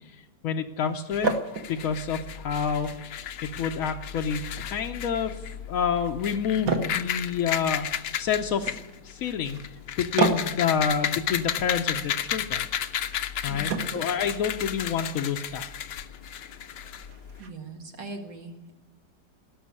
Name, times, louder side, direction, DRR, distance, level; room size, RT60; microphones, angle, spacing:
voice 1, 0.4-1.3 1.7-2.9 3.4-5.4 5.7-7.9 8.2-8.8 9.0-9.6 10.0-12.7 13.4-15.7, left 7 dB, 60° left, 3 dB, 1.0 m, -28 dB
sound 1, 0.8-17.5, right 4 dB, 55° right, 1.6 m, -36 dB
sound 2, 1.1-17.4, left 9 dB, 75° left, 1.4 m, -33 dB
voice 2, 13.5-13.9 17.4-18.8, right 3 dB, 80° right, 3 dB, 2.5 m, -40 dB
17.5 x 6.4 x 9.6 m, 1.1 s
omnidirectional pair, 1.9 m